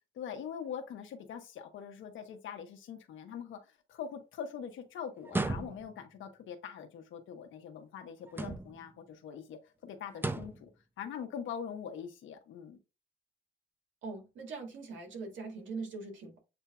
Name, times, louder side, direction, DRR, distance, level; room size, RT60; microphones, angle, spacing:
voice 1, 0.2-10.7 11.0-12.8, left 7 dB, 75° left, 1.2 m, -43 dB
sound 1, 5.2-6.1 8.3-8.9 10.1-10.7, right 2 dB, 10° right, 0.5 m, -35 dB
voice 2, 14.0-16.4, right 4 dB, 75° right, 2.1 m, -42 dB
8.0 x 2.8 x 2.4 m
cardioid pair, 90°, 20 cm